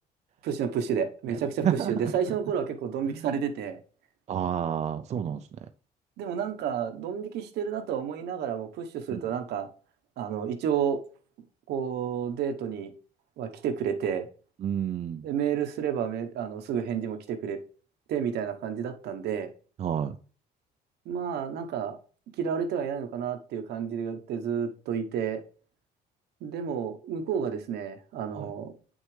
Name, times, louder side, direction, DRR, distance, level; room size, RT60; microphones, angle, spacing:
voice 1, 0.4-3.8 6.2-9.7 10.2-11.0 11.7-12.9 13.4-14.3 15.2-17.6 18.1-19.5 21.1-22.0 22.4-25.4 26.4-28.7, right 7 dB, 75° right, 7 dB, 1.0 m, -30 dB
voice 2, 1.3-2.1 3.1-3.3 4.3-5.6 9.1-9.2 14.6-15.2 19.8-20.2 28.3-28.5, right 9 dB, 40° right, 9 dB, 0.5 m, -30 dB
8.1 x 6.4 x 3.3 m, 0.40 s
cardioid pair, 110°, 17 cm